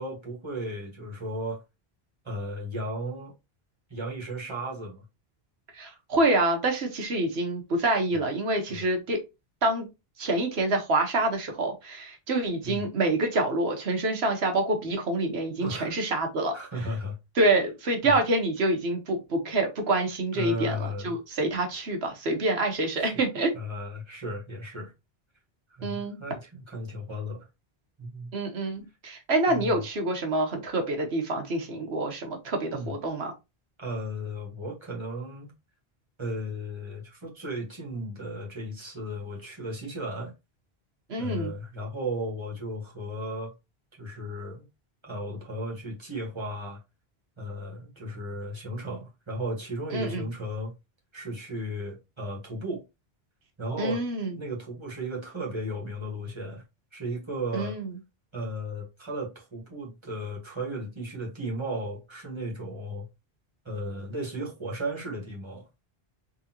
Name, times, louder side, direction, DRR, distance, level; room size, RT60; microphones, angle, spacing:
voice 1, 0.0-1.6 2.2-3.3 3.9-5.0 8.7-8.9 12.6-12.8 15.6-15.9 16.5-17.1 18.0-18.2 20.3-21.1 23.0-23.1 23.5-24.9 25.7-27.5 28.0-28.3 29.5-29.8 32.7-33.0 33.8-35.5 36.2-40.3 41.2-43.5 44.0-44.6 45.0-46.8 47.4-50.7 51.1-52.8 53.6-54.0 54.4-56.6 56.9-57.8 58.3-63.1 63.6-65.6, equal, 25° right, 1.6 m, -35 dB
voice 2, 5.8-9.2 9.6-9.9 10.2-16.5 17.4-23.5 25.8-26.2 28.3-33.3 41.1-41.5 49.9-50.3 53.8-54.3 57.5-57.9, right 2 dB, 85° right, 1.4 m, -27 dB
3.9 x 3.4 x 2.9 m
omnidirectional pair, 1.0 m